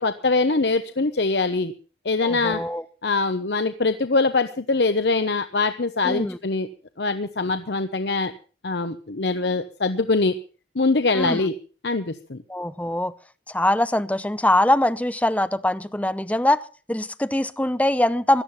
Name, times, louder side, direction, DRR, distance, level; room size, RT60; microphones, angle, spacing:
voice 1, 0.0-1.7 2.0-2.6 3.0-6.7 7.0-8.3 8.6-10.4 10.7-11.5 11.8-12.4, left 3 dB, 80° left, 0.9 m, -23 dB
voice 2, 2.2-2.8 6.0-6.4 11.1-11.4 12.5-13.1 13.5-16.6 16.9-18.4, left 1 dB, 10° left, 0.7 m, -22 dB
17.5 x 12.0 x 5.7 m
head